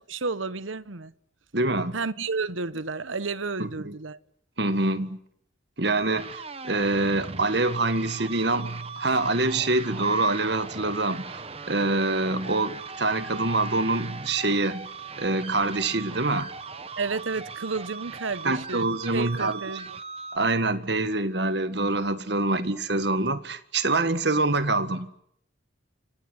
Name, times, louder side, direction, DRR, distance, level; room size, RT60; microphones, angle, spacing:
voice 1, 0.1-1.1 1.9-4.2 17.0-20.0, right 4 dB, 85° right, 1.1 m, -31 dB
voice 2, 1.5-2.3 3.6-3.9 4.6-5.2 5.8-14.9 15.2-16.5 18.4-19.6 20.3-25.1, right 2 dB, 60° right, 1.8 m, -25 dB
sound 1, 5.9-20.4, right 5 dB, 30° right, 1.3 m, -39 dB
28.0 x 25.5 x 7.9 m
head